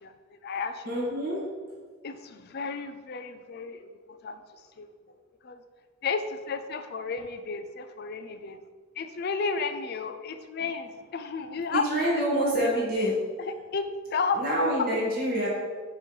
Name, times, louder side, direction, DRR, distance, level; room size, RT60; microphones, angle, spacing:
voice 1, 0.0-1.1 2.0-3.9 4.2-4.9 5.4-5.6 6.0-8.6 9.0-11.8 12.2-13.1 13.7-14.4, left 5 dB, 45° left, 9 dB, 0.4 m, -33 dB
voice 2, 0.8-1.4 11.7-13.1 14.3-15.5, right 1 dB, 40° right, -7 dB, 1.5 m, -26 dB
6.7 x 3.1 x 5.5 m, 1.5 s
head